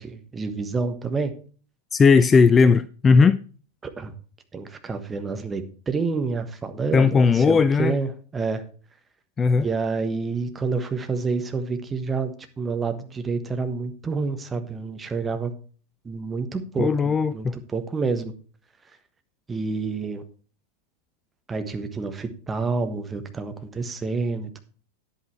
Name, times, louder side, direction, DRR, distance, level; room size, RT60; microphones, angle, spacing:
voice 1, 0.0-1.3 3.8-4.1 4.5-8.6 9.5-15.5 16.0-18.3 19.5-20.2 21.5-24.6, right 4 dB, 15° right, 1.3 m, -28 dB
voice 2, 1.9-3.4 6.9-8.0 9.4-9.7 16.8-17.5, left 5 dB, 20° left, 0.4 m, -17 dB
10.0 x 8.5 x 4.5 m
figure-of-eight pair, 90°, 0 cm